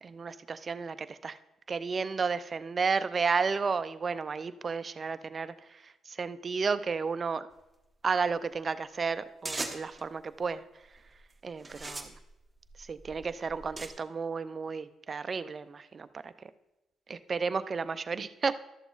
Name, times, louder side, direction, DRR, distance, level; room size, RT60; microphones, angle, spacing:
voice 1, 0.0-1.4 1.7-5.5 6.1-7.5 8.0-10.6 11.4-12.1 12.9-16.3 17.1-18.6, right 5 dB, 40° right, 13 dB, 0.5 m, -32 dB
sound 1, 9.4-10.1 10.8-11.2 11.6-13.9, right 2 dB, 15° right, 1.1 m, -40 dB
12.0 x 7.0 x 3.9 m, 0.95 s
cardioid pair, 90°, 0 cm